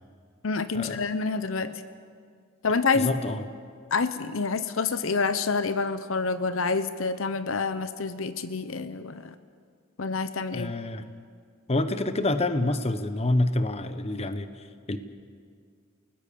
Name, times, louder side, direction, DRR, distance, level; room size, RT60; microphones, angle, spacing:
voice 1, 0.4-1.8 2.6-3.1 3.9-9.3 10.0-10.7, left 4 dB, 65° left, 12 dB, 0.9 m, -27 dB
voice 2, 2.9-3.5 10.5-11.1 11.7-15.0, left 2 dB, 30° left, 10 dB, 1.0 m, -27 dB
30.0 x 19.0 x 7.0 m, 2.1 s
head